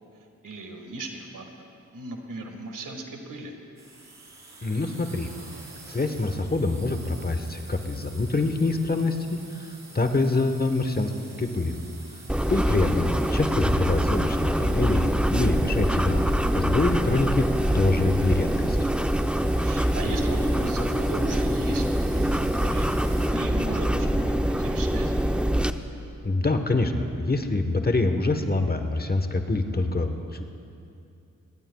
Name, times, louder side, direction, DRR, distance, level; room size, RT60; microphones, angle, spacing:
voice 1, 0.4-1.4 1.9-3.5 12.4-12.7 19.6-23.0 23.3-25.2, right 2 dB, 70° right, 4 dB, 1.7 m, -36 dB
sound 1, 3.8-23.3, right 2 dB, 55° right, 3.8 m, -48 dB
voice 2, 4.6-5.3 5.9-11.1 11.4-11.8 12.5-17.5 17.7-18.8 26.2-30.4, left 2 dB, 30° left, 6 dB, 1.2 m, -25 dB
sound 2, 12.3-25.7, equal, 5° right, 0.6 m, -24 dB
21.5 x 18.0 x 2.3 m, 2.6 s
supercardioid pair, 45°, 33 cm